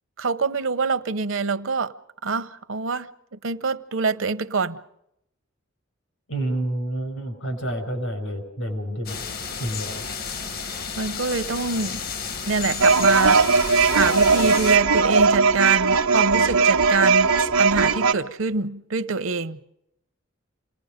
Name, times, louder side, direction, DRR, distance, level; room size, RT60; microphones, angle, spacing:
voice 1, 0.2-1.9 2.2-3.1 3.4-4.8 11.0-12.0 12.5-13.4 13.9-19.6, right 4 dB, 65° right, 0.8 m, -25 dB
voice 2, 6.3-9.2 9.6-10.0, right 1 dB, 75° left, 5.2 m, -29 dB
sound 1, 9.1-14.8, left 5 dB, 45° left, 0.9 m, -32 dB
sound 2, 12.8-18.1, right 4 dB, 85° right, 1.1 m, -18 dB
28.5 x 18.5 x 5.1 m
head